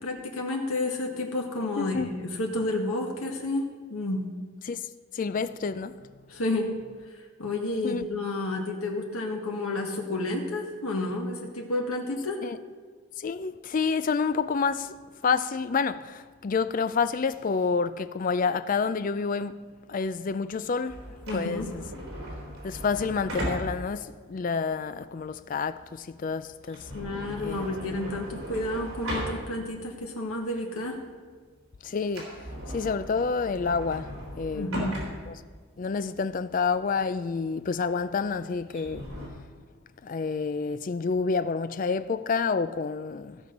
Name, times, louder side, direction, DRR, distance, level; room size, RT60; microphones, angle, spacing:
voice 1, 0.0-4.2 6.3-6.7 7.4-12.4 21.3-21.7 26.9-31.0 34.5-35.0, left 2 dB, 85° left, 1.6 m, -30 dB
voice 2, 1.8-2.1 4.7-4.8 5.1-6.0 7.8-8.1 12.4-12.6 13.2-14.9 15.2-19.6 19.9-21.0 21.3-21.8 22.6-26.9 27.4-27.6 31.8-32.4 32.7-34.7 35.3-35.4 35.8-39.1 40.0-43.4, left 5 dB, 40° left, 0.3 m, -28 dB
sound 1, 20.9-29.9 30.3-30.4 31.0-31.3 31.6-31.7 32.0-39.3, equal, 75° right, 3.5 m, -38 dB
15.5 x 6.2 x 5.3 m
head